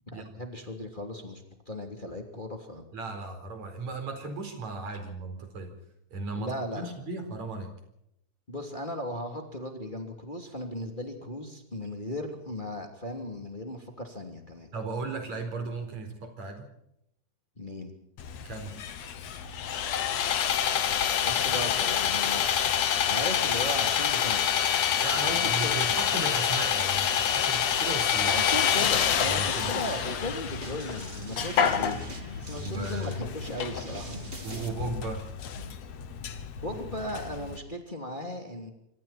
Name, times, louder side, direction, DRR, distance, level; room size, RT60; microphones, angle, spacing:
voice 1, 0.1-2.8 6.4-6.9 8.5-14.7 17.6-17.9 21.2-22.5 23.1-24.6 25.1-25.7 28.3-32.0 32.3-34.2 36.6-38.7, left 1 dB, 15° left, 3 dB, 2.9 m, -37 dB
voice 2, 2.9-5.7 6.1-7.7 14.7-16.7 18.5-18.8 25.0-28.4 29.3-29.7 32.6-33.2 34.4-35.3 36.7-36.8, right 3 dB, 70° right, 6 dB, 5.6 m, -36 dB
Sawing, 18.2-37.6, left 9 dB, 65° left, 2.5 m, -28 dB
sound 1, 28.8-34.7, right 2 dB, 20° right, 2.8 m, -43 dB
26.0 x 26.0 x 4.4 m, 0.79 s
omnidirectional pair, 3.4 m